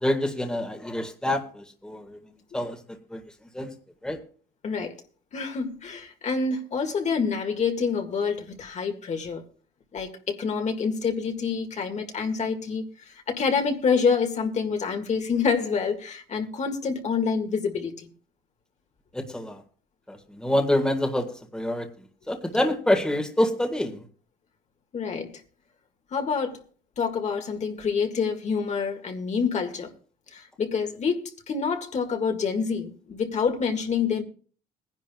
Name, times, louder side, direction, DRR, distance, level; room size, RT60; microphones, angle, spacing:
voice 1, 0.0-2.2 2.5-3.2 3.5-3.7 4.0-4.2 19.1-19.6 20.1-21.9 22.3-24.0, left 1 dB, 5° left, 1.8 m, -26 dB
voice 2, 4.6-4.9 5.3-9.4 9.9-18.1 24.9-25.4 26.1-26.6 27.0-29.9 30.3-34.2, left 5 dB, 45° left, 2.0 m, -27 dB
21.5 x 10.5 x 2.3 m
cardioid pair, 110°, 17 cm